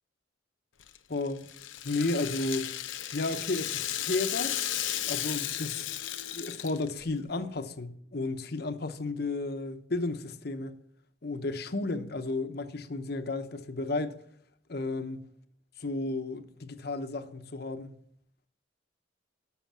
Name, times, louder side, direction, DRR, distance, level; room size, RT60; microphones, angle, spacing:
Rattle (instrument), 0.8-7.0, left 12 dB, 85° left, 0.8 m, -34 dB
voice 1, 1.9-2.7 3.1-4.6 5.1-5.9 6.3-10.7 11.2-14.2 14.7-15.2 15.8-17.9, left 2 dB, 55° left, 0.9 m, -33 dB
sound 1, 3.8-8.3, left 6 dB, 30° right, 1.0 m, -57 dB
13.0 x 6.5 x 7.3 m
head